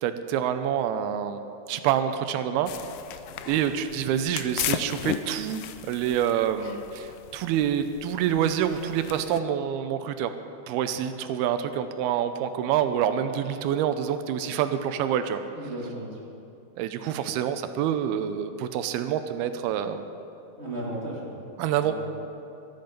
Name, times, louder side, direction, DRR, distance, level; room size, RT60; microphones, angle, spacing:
voice 1, 0.0-1.4 1.7-2.7 3.5-10.3 10.7-15.4 16.8-20.0 21.6-21.9, right 9 dB, 85° right, 9 dB, 2.6 m, -27 dB
sound 1, 2.7-9.4, left 12 dB, 80° left, 2.1 m, -36 dB
voice 2, 3.3-3.6 15.5-16.2 20.6-21.4 21.8-21.9, right 1 dB, 20° right, -6 dB, 2.3 m, -35 dB
14.0 x 13.5 x 5.2 m, 2.7 s
omnidirectional pair, 4.4 m